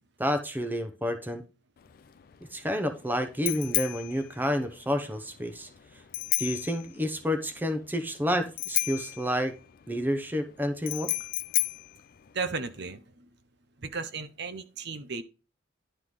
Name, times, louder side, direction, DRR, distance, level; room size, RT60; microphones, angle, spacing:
voice 1, 0.2-1.4 2.5-5.7 6.4-9.5 9.9-11.1, equal, 10° right, 8 dB, 0.8 m, -29 dB
Bicycle bell, 1.8-12.9, left 17 dB, 45° left, 0.3 m, -34 dB
voice 2, 12.3-13.3 13.8-15.2, right 4 dB, 55° right, 10 dB, 0.8 m, -35 dB
11.0 x 3.8 x 4.9 m, 0.32 s
head